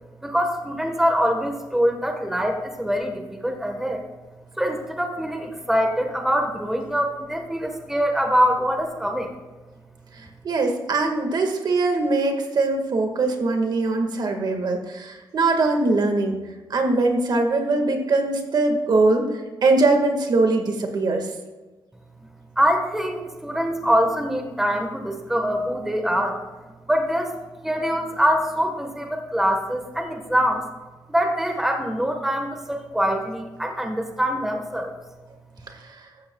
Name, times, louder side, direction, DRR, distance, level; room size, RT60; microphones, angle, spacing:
voice 1, 0.2-4.0 4.6-9.3 22.6-26.4 26.9-27.4 27.6-30.6 31.1-34.9, equal, 5° right, 3 dB, 1.4 m, -24 dB
voice 2, 10.4-16.4 16.7-21.3 35.9-36.0, right 3 dB, 60° right, 4 dB, 1.8 m, -21 dB
15.0 x 13.5 x 2.4 m, 1.2 s
wide cardioid pair, 130°, 8 cm